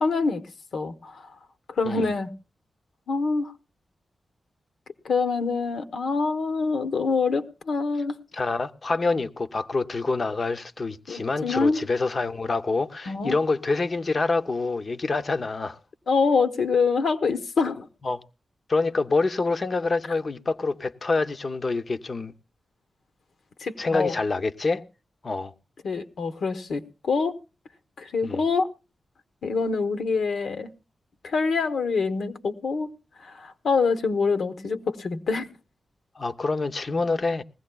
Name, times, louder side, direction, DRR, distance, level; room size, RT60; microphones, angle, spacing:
voice 1, 0.0-0.4 0.7-1.2 1.8-2.3 3.1-3.5 5.0-8.2 11.1-11.8 13.1-13.3 16.1-17.9 23.6-24.1 25.8-27.3 28.0-28.7 29.4-30.7 31.2-32.9 33.2-35.5, left 4 dB, 75° left, 0.9 m, -25 dB
voice 2, 8.3-15.8 18.0-18.2 18.7-22.3 23.8-24.9 25.2-25.5 28.2-28.4 36.2-37.4, left 3 dB, 35° left, 0.6 m, -26 dB
20.0 x 16.0 x 2.2 m
wide cardioid pair, 170°, 0 cm